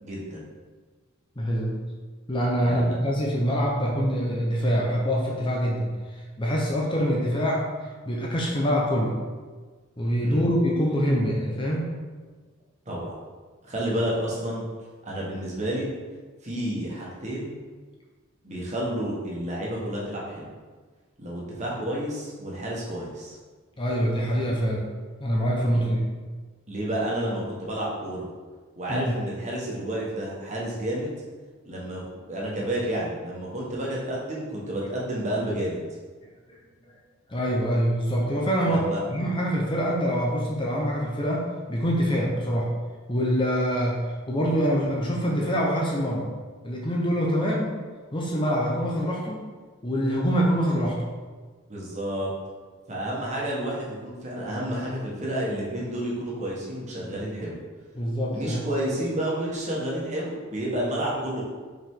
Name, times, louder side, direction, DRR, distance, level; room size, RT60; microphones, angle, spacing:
voice 1, 0.0-0.4 2.6-3.0 10.2-10.5 12.9-13.1 13.6-14.6 15.0-15.9 16.4-17.6 18.4-20.5 21.2-23.3 25.7-25.8 26.7-28.3 28.8-31.1 31.6-32.0 32.3-35.8 38.6-39.0 51.7-52.3 52.9-57.6 58.3-61.4, right 1 dB, 35° right, -5 dB, 1.5 m, -30 dB
voice 2, 1.4-1.8 2.3-5.9 6.4-7.6 8.1-9.2 10.0-11.9 23.8-24.9 25.2-26.0 28.9-29.1 37.3-42.7 43.1-44.0 44.3-46.3 46.6-47.7 48.1-49.4 49.8-51.1 57.0-57.1 57.9-58.6, equal, 25° left, -2 dB, 0.8 m, -25 dB
5.5 x 4.9 x 3.7 m, 1.4 s
head